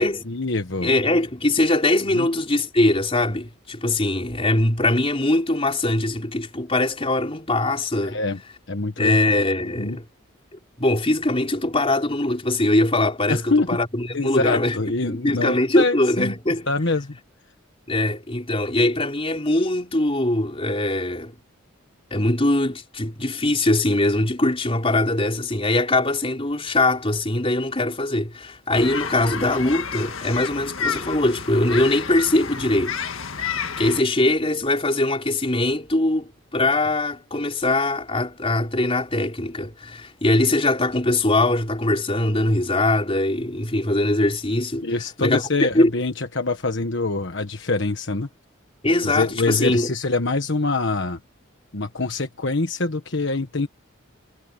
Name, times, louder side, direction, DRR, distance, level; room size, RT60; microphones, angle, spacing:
voice 1, 0.3-0.9 2.1-2.3 8.0-8.4 8.7-9.2 9.8-10.0 13.3-13.7 14.1-16.3 16.7-17.2 44.8-48.3 49.0-51.2 51.7-53.7, left 3 dB, 60° left, 1.4 m, -24 dB
voice 2, 0.8-8.2 9.0-10.1 10.8-14.8 15.0-16.7 17.9-21.3 22.1-33.0 33.3-33.5 33.8-44.9 45.2-45.4 45.7-45.9 48.8-49.9, left 2 dB, 30° left, 4.2 m, -22 dB
sound 1, 28.7-34.0, left 6 dB, 80° left, 1.8 m, -30 dB
head